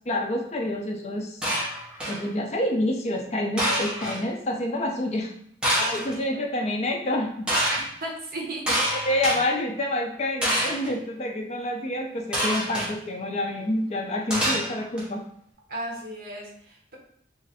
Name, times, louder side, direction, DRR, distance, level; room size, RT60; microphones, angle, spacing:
voice 1, 0.1-1.4 2.1-5.3 5.9-7.3 8.7-8.8 9.0-15.2, left 1 dB, 35° left, 2 dB, 0.4 m, -28 dB
sound 1, 1.4-2.2 3.6-4.2 5.6-6.2 7.5-7.8 8.7-9.4 10.4-10.9 12.3-12.9 14.3-15.0, equal, 5° right, 0.8 m, -26 dB
voice 2, 7.7-9.0 15.7-17.0, right 1 dB, 50° right, -1 dB, 0.9 m, -35 dB
3.1 x 2.5 x 4.0 m, 0.67 s
head